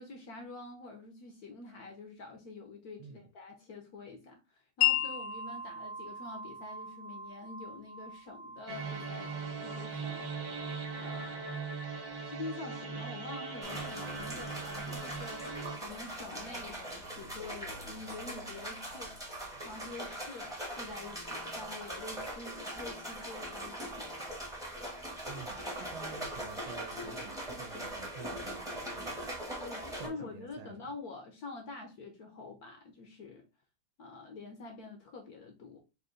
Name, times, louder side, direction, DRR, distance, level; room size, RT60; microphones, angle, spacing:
voice 1, 0.0-9.3 9.6-10.7 11.0-11.6 12.2-19.2 19.6-24.3 26.1-26.3 29.6-33.4 34.0-35.8, left 3 dB, 60° left, 1.0 m, -46 dB
Wind chime, 4.8-12.4, left 10 dB, 85° left, 1.5 m, -37 dB
sound 1, 8.7-15.8, right 4 dB, 50° right, 1.5 m, -40 dB
sound 2, 13.6-30.1, right 1 dB, 5° right, 0.7 m, -41 dB
voice 2, 25.3-29.3 29.9-30.7, right 7 dB, 80° right, 1.4 m, -49 dB
3.9 x 2.7 x 3.7 m
omnidirectional pair, 2.2 m